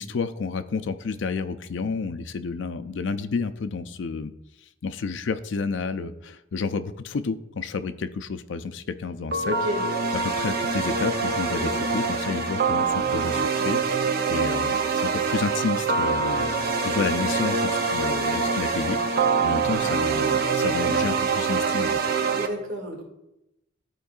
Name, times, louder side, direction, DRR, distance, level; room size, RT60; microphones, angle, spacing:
voice 1, 0.0-4.3 4.8-9.6 10.1-16.5 16.8-19.0 19.4-22.0, left 4 dB, 65° left, 11 dB, 0.4 m, -30 dB
sound 1, 9.3-22.5, right 4 dB, 50° right, 0.6 m, -24 dB
voice 2, 9.4-9.8 11.6-12.0 22.3-23.0, equal, 80° right, -2 dB, 2.2 m, -32 dB
13.0 x 4.5 x 2.4 m, 0.88 s
head